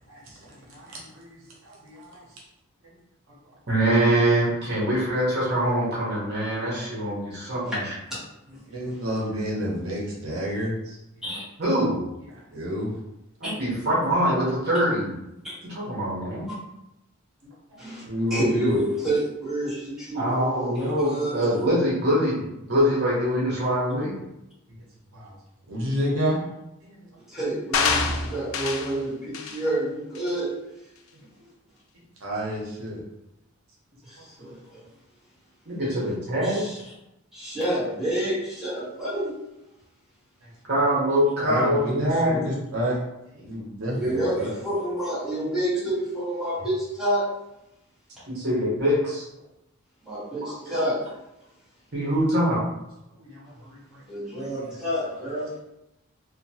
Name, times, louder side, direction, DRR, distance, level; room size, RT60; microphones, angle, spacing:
voice 1, 0.1-2.3 2.8-3.0 3.3-3.4 8.7-11.0 12.2-12.9 17.7-18.8 25.1-25.4 25.7-26.4 26.8-27.1 31.1-31.2 32.2-33.0 34.4-34.5 40.4-40.5 40.9-41.0 41.4-43.0 43.3-44.5 53.2-54.0 54.3-54.5 55.0-55.1, equal, 75° right, -4 dB, 0.7 m, -30 dB
voice 2, 3.7-7.8 11.6-12.0 13.4-15.1 15.6-16.5 20.1-24.2 35.7-36.6 40.7-42.5 48.3-49.3 50.4-50.7 51.9-52.6, equal, 50° right, -6 dB, 1.0 m, -24 dB
voice 3, 18.3-21.5 27.3-30.5 34.0-34.8 35.8-35.9 36.4-36.8 37.3-39.4 43.9-47.3 50.0-51.1 54.1-55.5, right 1 dB, ahead, -12 dB, 1.3 m, -28 dB
sound 1, 27.7-29.0 29.3-29.6 30.2-30.3, left 5 dB, 70° left, 0.3 m, -26 dB
2.8 x 2.2 x 2.8 m, 0.90 s
head